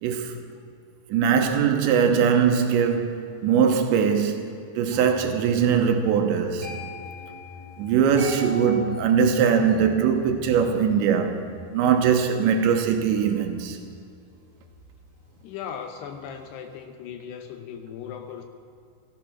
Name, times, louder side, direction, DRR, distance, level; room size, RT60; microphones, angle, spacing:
voice 1, 0.0-0.3 1.1-6.7 7.8-11.5 11.7-13.8, right 7 dB, 80° right, 3.2 m, -21 dB
sound 1, 4.9-15.9 16.2-16.5, left 2 dB, 25° left, 2.7 m, -42 dB
voice 2, 15.4-18.4, left 7 dB, 75° left, 2.7 m, -37 dB
16.5 x 14.5 x 6.0 m
omnidirectional pair, 5.2 m